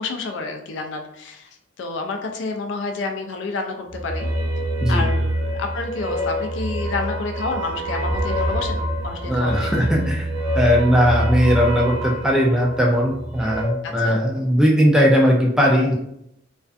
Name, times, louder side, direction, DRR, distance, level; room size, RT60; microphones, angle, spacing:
voice 1, 0.0-4.3 4.9-9.7 13.8-14.2, left 3 dB, 70° left, 4 dB, 0.4 m, -29 dB
sound 1, 3.9-13.6, equal, 45° right, 0.6 m, -25 dB
voice 2, 9.3-10.3 10.6-15.9, equal, 5° right, -2 dB, 0.3 m, -18 dB
2.4 x 2.4 x 2.3 m, 0.78 s
head